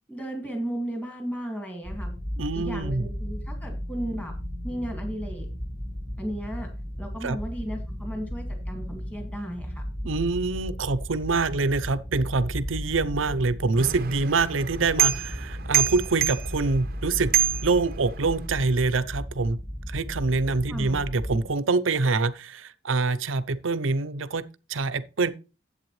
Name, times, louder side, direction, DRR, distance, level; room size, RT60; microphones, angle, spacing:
voice 1, 0.1-2.1 2.5-4.3 4.6-5.5 6.2-6.7 7.0-9.8 20.7-21.0, right 1 dB, 10° left, 2.1 m, -34 dB
sound 1, 1.8-21.5, equal, 35° left, 4.7 m, -35 dB
voice 2, 2.4-3.1 7.2-7.4 10.0-17.3 17.6-19.6 19.9-25.3, right 3 dB, 90° right, 0.7 m, -25 dB
sound 2, 13.8-18.5, right 9 dB, 50° right, 0.7 m, -28 dB
10.5 x 8.0 x 3.2 m
head